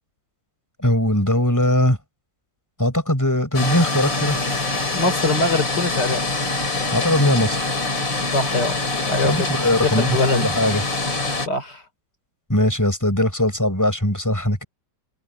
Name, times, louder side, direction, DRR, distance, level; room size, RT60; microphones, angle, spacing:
voice 1, 0.8-2.0 2.8-4.4 6.9-7.7 9.2-10.8 12.5-14.6, left 1 dB, 10° left, 6.8 m, -20 dB
sound 1, 3.5-11.5, left 3 dB, 80° left, 5.2 m, -24 dB
voice 2, 4.9-6.2 8.3-8.8 9.1-9.5 9.8-10.5 11.5-11.8, left 3 dB, 65° left, 4.6 m, -22 dB
omnidirectional pair, 2.0 m